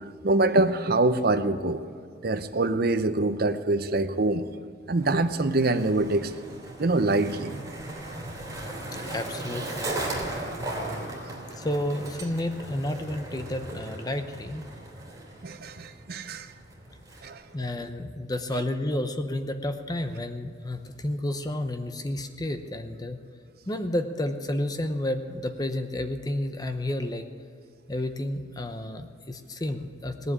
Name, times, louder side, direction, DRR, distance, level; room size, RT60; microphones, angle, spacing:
voice 1, 0.2-1.8 2.2-4.5 4.9-6.3 6.8-7.5 15.4-16.5 17.2-17.4, right 2 dB, 55° right, 10 dB, 0.7 m, -24 dB
Skateboard, 5.0-17.7, right 1 dB, 20° right, 3.0 m, -37 dB
voice 2, 9.0-9.9 11.6-14.7 17.5-23.2 23.7-27.2 27.9-30.3, left 1 dB, 20° left, 7 dB, 0.8 m, -31 dB
18.0 x 7.7 x 9.8 m, 2.2 s
head